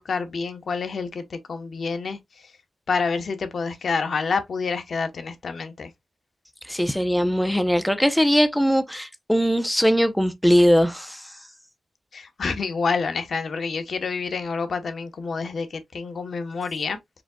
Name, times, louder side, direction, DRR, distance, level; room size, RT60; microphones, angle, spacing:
voice 1, 0.0-2.5 2.9-5.9 12.1-17.2, left 4 dB, 65° left, 0.9 m, -28 dB
voice 2, 6.7-11.3, equal, ahead, 0.6 m, -20 dB
4.9 x 3.8 x 2.2 m
wide cardioid pair, 115°, 0 cm